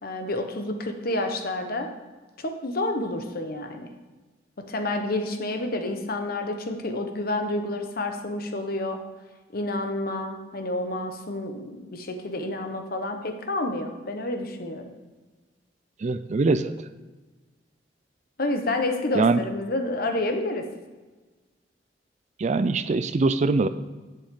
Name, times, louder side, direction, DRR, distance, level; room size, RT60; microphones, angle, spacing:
voice 1, 0.0-1.9 2.4-3.9 4.6-9.0 9.5-14.9 18.4-20.7, left 2 dB, 55° left, 5 dB, 1.1 m, -29 dB
voice 2, 16.0-16.7 19.1-19.4 22.4-23.7, right 3 dB, 40° right, 12 dB, 0.4 m, -22 dB
10.5 x 7.7 x 3.8 m, 1.3 s
head